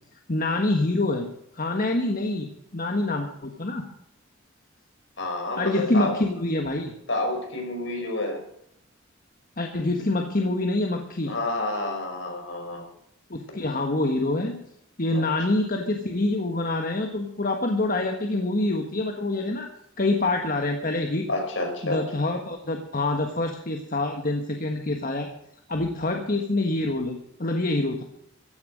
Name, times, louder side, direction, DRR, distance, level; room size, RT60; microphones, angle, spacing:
voice 1, 0.3-1.3 1.5-3.8 5.6-6.9 9.6-11.4 13.3-14.6 15.0-19.7 20.0-21.3 21.8-25.3 25.7-28.0, left 2 dB, 45° left, 3 dB, 1.4 m, -26 dB
voice 2, 5.2-6.2 7.1-8.4 11.3-12.8 15.1-15.3 21.3-22.0, left 2 dB, 65° left, 3 dB, 5.2 m, -29 dB
15.0 x 10.5 x 6.4 m, 0.74 s
head